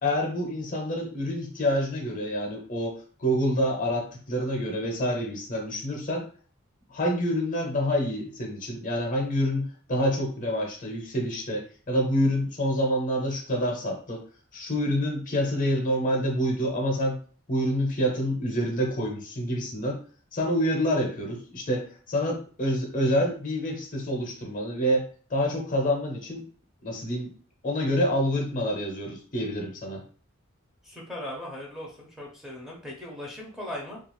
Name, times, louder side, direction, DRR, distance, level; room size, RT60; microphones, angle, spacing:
voice 1, 0.0-6.3 6.9-14.2 14.5-17.2 17.5-20.0 20.3-26.5 26.8-27.3 27.6-30.0, equal, 40° left, 1 dB, 0.7 m, -27 dB
voice 2, 30.8-34.0, left 1 dB, ahead, -3 dB, 0.6 m, -38 dB
2.4 x 2.3 x 3.0 m, 0.42 s
head